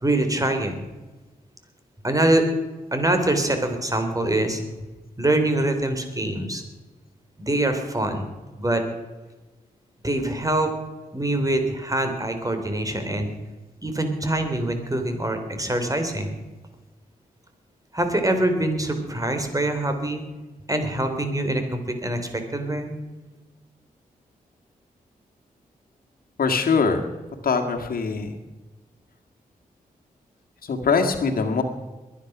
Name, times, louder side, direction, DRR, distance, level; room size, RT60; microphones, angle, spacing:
voice 1, 0.0-0.8 2.0-2.5 2.9-4.6 5.2-6.6 7.4-8.3 8.6-8.8 10.0-10.7 11.1-13.3 13.8-16.4 17.9-20.2 20.7-22.9, right 1 dB, 20° right, 6 dB, 3.6 m, -24 dB
voice 2, 26.4-27.0 27.4-28.4 30.6-31.6, left 5 dB, 70° left, 4 dB, 2.0 m, -22 dB
22.0 x 10.0 x 6.1 m, 1.2 s
cardioid pair, 55°, 16 cm